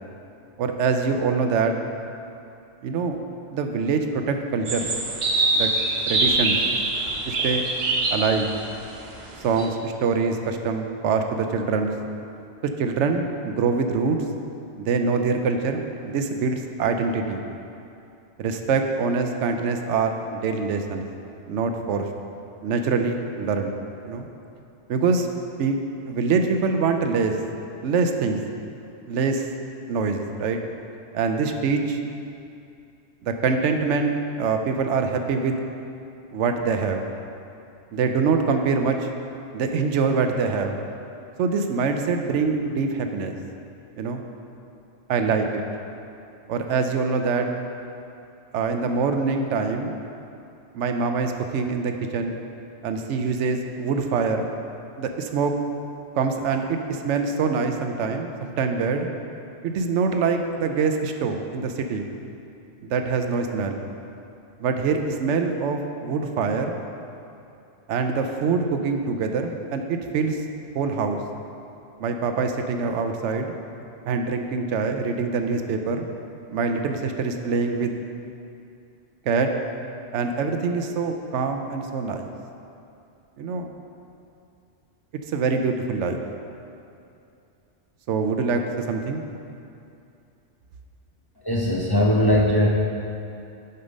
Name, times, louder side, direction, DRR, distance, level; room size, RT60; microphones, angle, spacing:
voice 1, 0.6-1.7 2.8-3.2 3.5-4.9 5.5-5.7 6.1-6.6 7.3-7.7 8.1-8.5 9.4-11.9 12.8-14.2 14.8-17.4 18.4-21.0 21.5-22.1 22.6-23.7 24.0-24.3 24.9-25.3 25.6-25.8 26.1-27.3 27.8-28.4 29.1-29.5 29.9-30.6 31.1-32.0 33.2-35.6 36.3-37.0 37.9-39.1 39.5-40.8 41.4-43.4 44.0-44.2 45.1-45.6 46.5-47.5 48.5-50.0 50.7-52.4 52.8-54.5 55.0-55.5 56.2-59.1 59.6-62.1 62.9-63.8 64.6-66.8 67.9-70.4 70.7-71.2 72.0-73.5 74.1-76.1 76.5-77.9 79.3-79.5 80.1-82.3 83.4-83.7 85.3-86.2 88.1-89.2, right 4 dB, 85° right, 5 dB, 0.9 m, -24 dB
sound 1, 4.6-9.7, right 2 dB, 60° right, 1.2 m, -24 dB
voice 2, 91.4-92.7, left 1 dB, 30° left, -3 dB, 0.5 m, -19 dB
6.7 x 5.6 x 5.2 m, 2.6 s
omnidirectional pair, 1.2 m